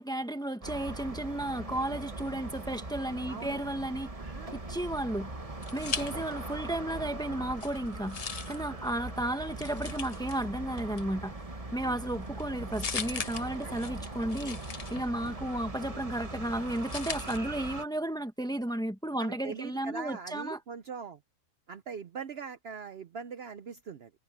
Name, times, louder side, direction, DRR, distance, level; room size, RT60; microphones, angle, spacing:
voice 1, 0.0-4.1 4.7-5.3 5.7-11.3 11.7-20.6, right 1 dB, 5° left, 1.1 m, -33 dB
sound 1, 0.6-17.8, right 2 dB, 25° right, 1.7 m, -40 dB
voice 2, 3.3-3.6 4.2-4.5 11.8-12.0 13.6-13.8 15.2-15.4 19.2-21.2 21.7-24.1, right 6 dB, 55° right, 0.9 m, -42 dB
sound 2, 5.2-6.7 7.0-17.4, left 6 dB, 35° left, 0.6 m, -42 dB
omnidirectional pair, 1.4 m